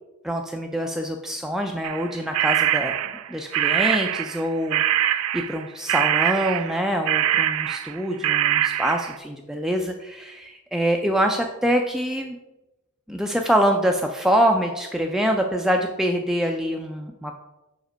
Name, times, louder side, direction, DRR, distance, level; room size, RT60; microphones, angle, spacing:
voice 1, 0.2-3.0 3.3-4.8 5.3-12.4 13.1-17.4, equal, ahead, 2 dB, 0.3 m, -25 dB
sound 1, 1.8-4.5 4.7-8.0 8.2-9.2, right 11 dB, 75° right, 0.4 m, -23 dB
5.1 x 5.1 x 5.0 m, 0.99 s
head